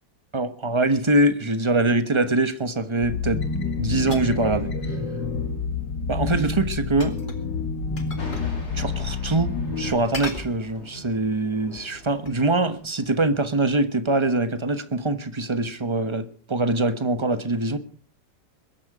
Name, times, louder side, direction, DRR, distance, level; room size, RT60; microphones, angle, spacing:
voice 1, 0.3-3.4 3.8-4.7 6.1-7.2 8.7-17.8, right 2 dB, 20° right, 0.9 m, -23 dB
sound 1, 3.0-9.9, left 4 dB, 90° left, 2.6 m, -28 dB
sound 2, 4.1-4.5 7.0-7.5 8.0-8.6 8.9-9.0 10.1-11.1 11.6-12.4, left 2 dB, 25° left, 2.1 m, -37 dB
Thunder, 8.2-13.2, left 1 dB, 60° left, 6.1 m, -43 dB
21.5 x 12.0 x 4.9 m
omnidirectional pair, 1.9 m